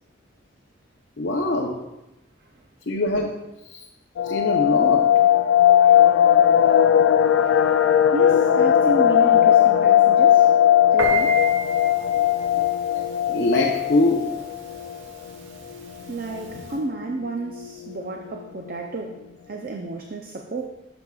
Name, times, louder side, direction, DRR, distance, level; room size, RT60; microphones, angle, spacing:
voice 1, 1.2-1.8 2.9-3.4 3.6-3.9 4.2-5.1 13.3-14.4, left 2 dB, 65° left, 0 dB, 0.7 m, -23 dB
sound 1, 4.2-15.0 15.3-15.4 15.7-15.9 16.3-16.8 17.3-17.4 17.6-18.1 18.4-18.5, left 10 dB, 85° left, 0.3 m, -18 dB
voice 2, 6.4-6.8 8.1-10.6 10.9-11.4 16.1-20.6, right 2 dB, 45° right, 3 dB, 0.5 m, -32 dB
Piano, 11.0-16.8, right 4 dB, 85° right, 1.1 m, -34 dB
10.5 x 6.9 x 2.3 m, 0.96 s
head